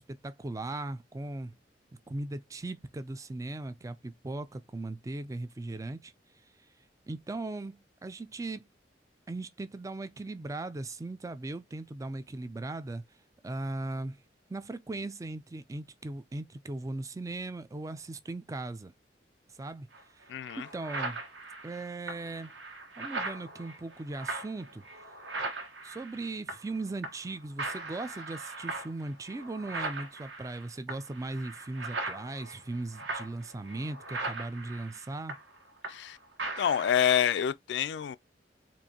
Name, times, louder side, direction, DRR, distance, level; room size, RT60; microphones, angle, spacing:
voice 1, 0.0-1.5 2.1-6.1 7.1-8.6 9.3-13.0 13.4-14.2 14.5-18.9 19.5-19.9 20.1-20.3 20.6-21.2 21.6-22.5 23.0-24.8 25.8-35.4, right 2 dB, 20° right, 0.4 m, -38 dB
sound 1, 19.9-20.0 20.4-26.8 27.0-27.3 27.6-36.1 36.4-37.4, right 3 dB, 90° right, 1.4 m, -39 dB
voice 2, 20.3-20.7 35.9-36.2 36.6-38.2, left 9 dB, 75° left, 0.3 m, -27 dB
4.5 x 2.5 x 2.8 m
head